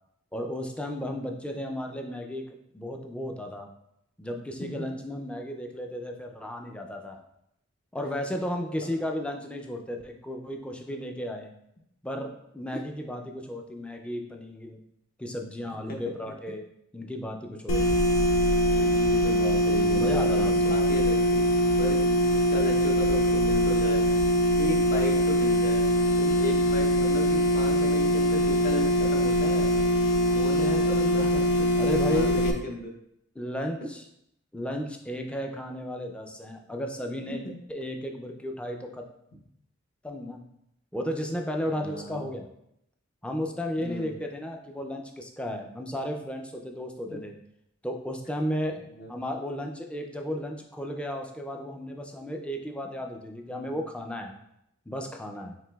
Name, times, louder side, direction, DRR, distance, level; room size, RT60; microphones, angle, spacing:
voice 1, 0.3-3.7 4.2-7.2 7.9-11.5 12.0-14.8 15.2-16.7 16.9-18.0 19.9-20.8 31.8-32.4 33.4-34.0 34.5-37.4 37.7-39.1 40.0-40.4 40.9-42.5 43.2-47.3 47.8-48.8 49.1-54.3 54.9-55.6, equal, 5° left, 3 dB, 0.3 m, -34 dB
sound 1, 17.7-32.5, equal, 90° left, 0.5 m, -23 dB
voice 2, 18.7-21.5 21.8-24.1 24.6-25.8 26.2-29.8 30.3-31.8 32.1-32.9 37.3-37.5 41.7-42.3 43.8-44.1 49.0-49.1 53.5-53.8, left 1 dB, 50° left, 2 dB, 0.7 m, -35 dB
4.8 x 3.3 x 2.3 m, 0.77 s
head